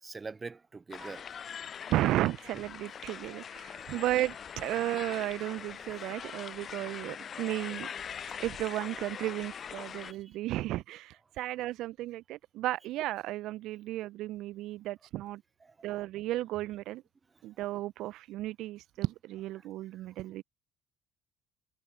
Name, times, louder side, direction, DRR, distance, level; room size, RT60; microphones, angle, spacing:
voice 1, 0.0-1.3 3.8-4.0 8.1-8.4 10.0-10.4 15.6-16.0 19.6-19.7, right 4 dB, 25° right, 0.8 m, -45 dB
sound 1, 0.9-10.1, left 7 dB, 45° left, 0.3 m, -42 dB
voice 2, 1.9-7.9 8.3-15.4 15.8-17.0 17.4-20.4, right 15 dB, 65° right, 0.6 m, -34 dB
hypercardioid pair, 55°, 0 cm